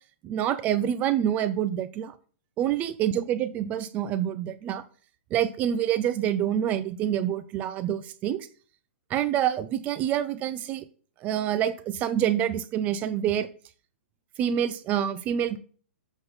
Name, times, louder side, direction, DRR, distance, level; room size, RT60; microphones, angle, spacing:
voice 1, 0.2-2.1 2.6-4.8 5.3-8.5 9.1-10.8 11.2-13.5 14.4-15.6, right 10 dB, 20° right, 13 dB, 0.5 m, -27 dB
7.6 x 6.0 x 4.0 m, 0.43 s
hypercardioid pair, 150°, 7 cm